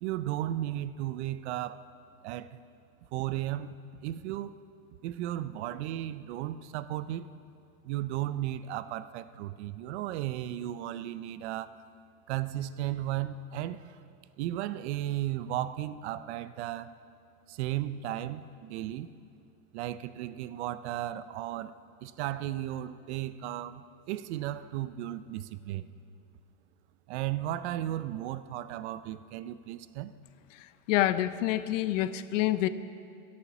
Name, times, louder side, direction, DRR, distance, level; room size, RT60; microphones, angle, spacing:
voice 1, 0.0-1.9 2.2-2.6 3.1-4.6 5.0-7.3 7.8-11.8 12.3-14.0 14.4-16.9 17.5-19.1 19.7-21.7 22.0-25.8 27.1-30.1, right 13 dB, 50° right, 14 dB, 0.6 m, -35 dB
voice 2, 30.9-32.7, left 14 dB, 55° left, 14 dB, 0.7 m, -27 dB
22.5 x 8.7 x 6.0 m, 2.5 s
supercardioid pair, 135°, 44 cm